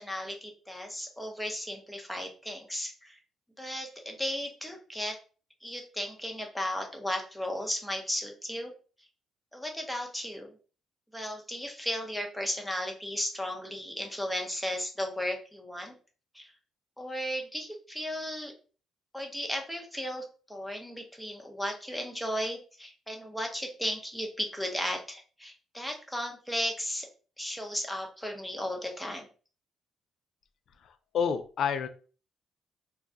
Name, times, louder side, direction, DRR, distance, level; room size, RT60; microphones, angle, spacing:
voice 1, 0.0-3.2 3.6-5.2 5.6-8.7 9.5-10.5 11.1-15.9 16.3-16.5 17.0-18.5 19.1-27.1 27.4-29.3, equal, 5° left, 2 dB, 0.8 m, -35 dB
voice 2, 30.8-31.9, left 7 dB, 65° left, 10 dB, 0.4 m, -29 dB
2.3 x 2.2 x 3.8 m, 0.37 s
cardioid pair, 90°, 0 cm